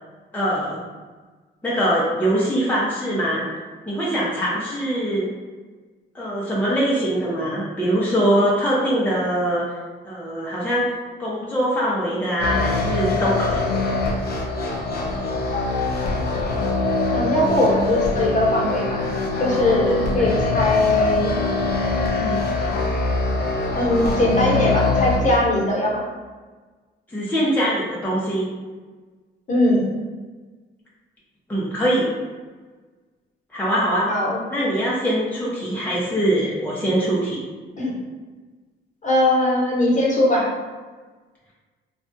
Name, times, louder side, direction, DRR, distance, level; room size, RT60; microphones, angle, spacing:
voice 1, 0.3-0.8 1.6-3.5 3.9-5.3 6.1-9.6 10.0-13.6 19.8-20.3 22.2-22.4 27.1-28.5 31.5-32.1 33.5-34.1 34.5-37.4, equal, 10° left, -7 dB, 0.7 m, -22 dB
sound 1, 12.4-25.2, left 3 dB, 55° left, 0.6 m, -23 dB
voice 2, 15.5-15.9 17.1-19.1 19.4-19.9 20.1-21.3 23.7-26.1 29.5-29.9 34.1-34.4 37.8-37.9 39.0-40.5, left 1 dB, 40° left, -5 dB, 1.0 m, -20 dB
3.2 x 2.3 x 2.6 m, 1.4 s
cardioid pair, 90°, 20 cm